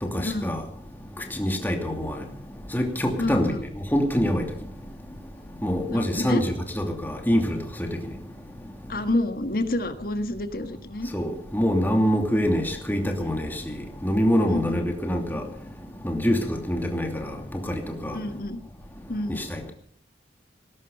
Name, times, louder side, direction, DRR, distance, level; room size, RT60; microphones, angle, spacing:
voice 1, 0.0-0.6 1.3-2.2 2.7-3.5 3.9-4.5 5.6-7.9 11.1-13.6 14.0-15.4 16.0-17.4 17.7-18.2 19.3-19.6, equal, 10° left, 2.6 m, -25 dB
voice 2, 3.2-3.6 5.9-6.4 8.9-11.1 14.5-14.8 18.1-18.6 19.1-19.4, left 1 dB, 50° left, 1.7 m, -28 dB
19.5 x 11.5 x 5.5 m
head